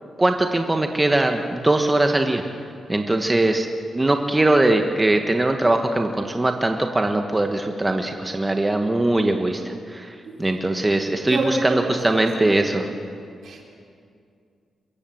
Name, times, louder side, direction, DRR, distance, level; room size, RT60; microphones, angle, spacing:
voice 1, 0.2-2.4 2.9-3.7 3.9-12.9, right 2 dB, 20° right, 4 dB, 1.3 m, -21 dB
voice 2, 11.3-12.5 13.4-13.6, right 2 dB, 70° right, 1 dB, 3.8 m, -27 dB
23.5 x 15.0 x 7.8 m, 2.3 s
cardioid pair, 90°, 0 cm